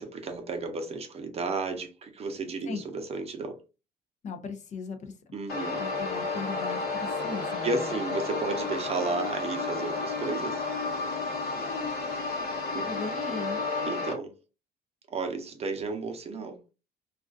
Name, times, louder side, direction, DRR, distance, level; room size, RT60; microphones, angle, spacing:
voice 1, 0.0-3.6 5.3-5.8 7.6-10.6 12.7-12.9 13.9-14.3 15.1-16.7, right 3 dB, 35° right, 0.6 m, -33 dB
voice 2, 4.2-5.3 5.8-7.9 11.6-12.0 12.9-13.6, left 4 dB, 45° left, 0.5 m, -38 dB
sound 1, 5.5-14.1, left 3 dB, 75° left, 0.9 m, -32 dB
2.4 x 2.3 x 2.4 m
cardioid pair, 110°, 17 cm